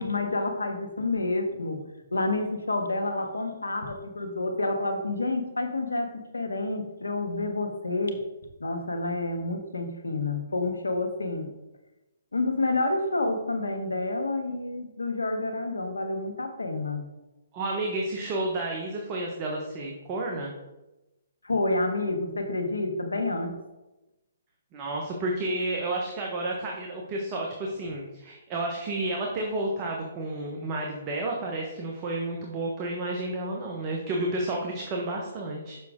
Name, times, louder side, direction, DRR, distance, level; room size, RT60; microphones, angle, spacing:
voice 1, 0.0-1.8 2.1-8.3 8.6-11.5 12.3-17.1 21.4-23.5, left 2 dB, 90° left, 5 dB, 1.2 m, -29 dB
voice 2, 17.5-20.5 24.7-35.8, right 2 dB, 30° right, 0 dB, 1.1 m, -31 dB
6.6 x 6.0 x 3.7 m, 1.0 s
hypercardioid pair, 140°, 0 cm